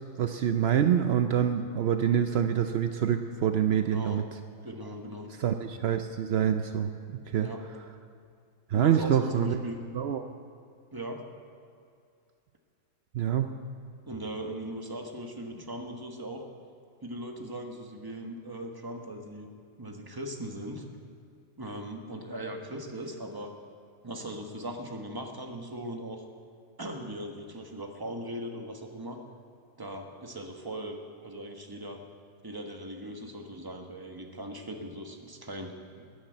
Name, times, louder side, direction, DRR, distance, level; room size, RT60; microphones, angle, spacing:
voice 1, 0.2-4.2 5.4-6.9 7.3-7.5 8.7-9.6 9.9-10.3 13.1-13.5, right 9 dB, 75° right, 7 dB, 0.5 m, -26 dB
voice 2, 3.8-4.2 4.6-5.3 7.4-7.6 8.7-9.8 10.9-11.2 14.1-16.4 17.0-19.5 19.8-21.0 21.6-23.5 24.0-26.2 26.8-29.2 29.8-32.0 32.4-36.0, right 1 dB, 15° right, 3 dB, 1.1 m, -39 dB
13.0 x 10.0 x 9.0 m, 2.3 s
omnidirectional pair, 1.8 m